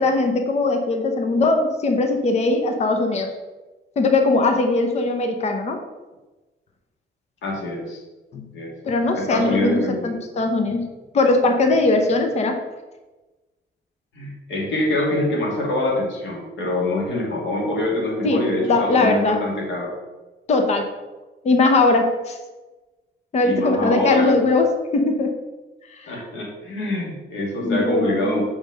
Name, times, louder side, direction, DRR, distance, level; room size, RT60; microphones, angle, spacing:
voice 1, 0.0-3.3 4.0-5.8 8.3-8.5 8.8-10.9 11.1-12.6 18.2-19.4 20.5-20.9 21.4-22.4 23.3-25.3 26.0-26.2 27.6-28.4, left 2 dB, 35° left, 5 dB, 0.7 m, -20 dB
voice 2, 7.4-8.0 8.5-8.7 9.1-10.1 14.1-19.9 23.4-24.3 26.1-28.4, left 2 dB, 90° left, -2 dB, 2.4 m, -25 dB
5.5 x 4.7 x 6.4 m, 1.2 s
cardioid pair, 165°, 19 cm